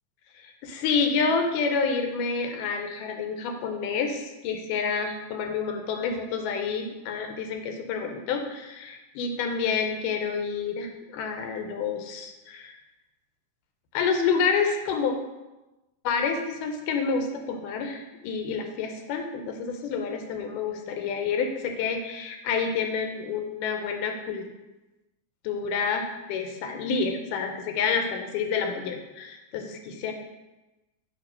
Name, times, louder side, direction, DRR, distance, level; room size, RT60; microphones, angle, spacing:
voice 1, 0.4-12.7 13.9-15.1 16.0-24.5 25.4-30.1, left 5 dB, 80° left, 4 dB, 2.2 m, -28 dB
7.2 x 2.8 x 5.5 m, 1.0 s
omnidirectional pair, 3.7 m